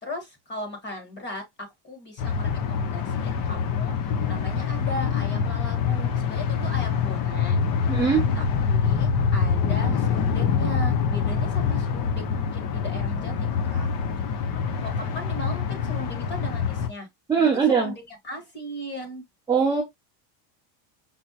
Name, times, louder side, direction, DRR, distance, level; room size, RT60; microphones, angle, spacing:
voice 1, 0.0-3.9 4.3-7.7 8.3-13.9 14.8-17.1 17.4-19.2, left 1 dB, 20° left, 1.5 m, -37 dB
sound 1, 2.2-16.9, left 6 dB, 45° left, 0.7 m, -25 dB
voice 2, 7.9-8.3 17.3-17.9 19.5-19.8, right 6 dB, 10° right, 0.6 m, -21 dB
5.5 x 2.1 x 2.8 m
cardioid pair, 140°, 50 cm